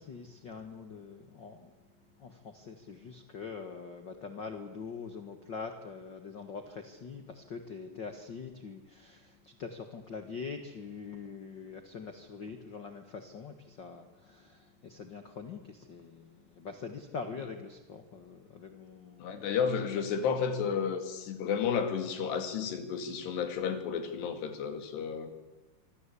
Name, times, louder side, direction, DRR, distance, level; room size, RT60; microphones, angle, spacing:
voice 1, 0.0-1.7 2.2-19.5 19.9-20.4, left 5 dB, 55° left, 7 dB, 1.2 m, -44 dB
voice 2, 19.2-25.3, left 6 dB, 90° left, 8 dB, 4.5 m, -32 dB
26.0 x 25.0 x 8.5 m, 1.1 s
omnidirectional pair, 4.7 m